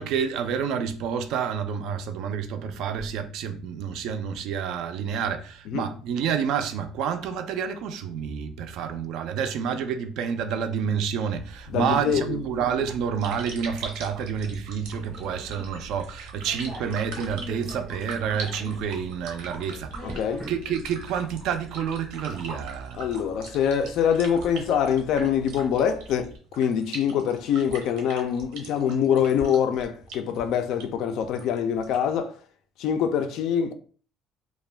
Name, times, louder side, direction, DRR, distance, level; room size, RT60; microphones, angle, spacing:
voice 1, 0.0-20.2 20.5-23.0, right 7 dB, 60° right, 0.3 m, -29 dB
sound 1, 11.3-26.4, right 1 dB, 5° right, 0.6 m, -44 dB
voice 2, 11.7-12.4 20.0-20.5 23.0-32.4 32.8-33.7, left 8 dB, 55° left, 0.3 m, -24 dB
sound 2, 13.2-32.1, right 3 dB, 90° right, 0.7 m, -42 dB
2.3 x 2.1 x 3.3 m
cardioid pair, 175°, 0 cm